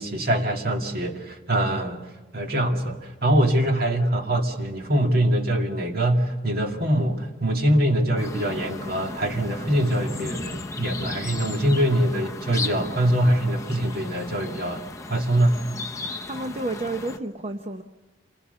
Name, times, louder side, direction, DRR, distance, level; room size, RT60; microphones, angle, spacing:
voice 1, 0.0-2.0 2.3-14.8 15.1-15.6, right 1 dB, 55° right, 3 dB, 2.3 m, -23 dB
sound 1, 8.2-17.2, left 2 dB, 15° left, 0.8 m, -35 dB
voice 2, 16.2-17.8, right 2 dB, 35° right, 5 dB, 0.8 m, -30 dB
27.5 x 21.0 x 6.8 m, 1.2 s
head